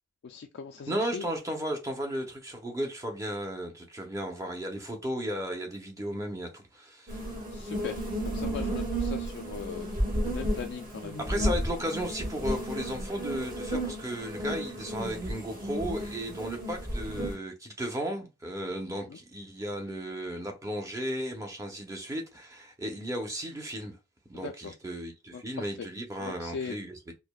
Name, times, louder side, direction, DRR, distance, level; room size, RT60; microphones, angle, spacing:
voice 1, 0.2-1.2 7.5-9.9 10.3-11.5 19.1-19.2 24.4-24.7 25.3-25.7 26.2-26.8, left 5 dB, 60° left, 0.3 m, -39 dB
voice 2, 0.9-7.2 11.2-24.0 24.3-27.1, equal, 15° right, 0.7 m, -35 dB
sound 1, 7.1-17.3, right 1 dB, 45° right, 1.0 m, -33 dB
4.8 x 2.1 x 2.3 m
head